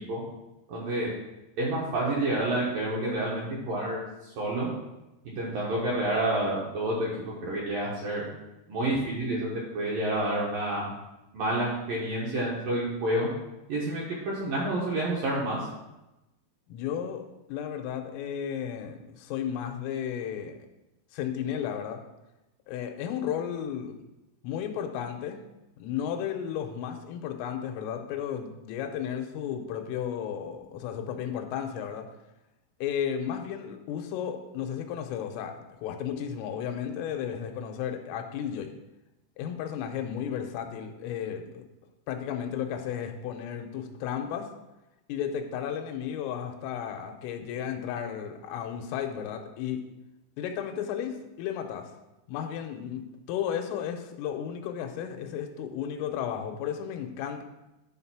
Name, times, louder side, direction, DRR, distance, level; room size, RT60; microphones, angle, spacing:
voice 1, 0.7-1.1 1.6-4.0 4.4-4.7 5.2-8.3 8.7-9.5 9.7-10.9 11.3-13.3 13.7-15.6, right 1 dB, 70° right, -5 dB, 2.1 m, -29 dB
voice 2, 16.7-17.2 17.5-20.6 21.1-22.0 22.7-23.9 24.4-25.4 25.8-32.1 32.8-38.7 39.4-41.6 42.1-44.5 45.1-49.8 50.4-51.9 52.3-57.4, left 9 dB, 85° left, 5 dB, 3.4 m, -33 dB
10.5 x 4.0 x 5.9 m, 0.96 s
omnidirectional pair, 5.8 m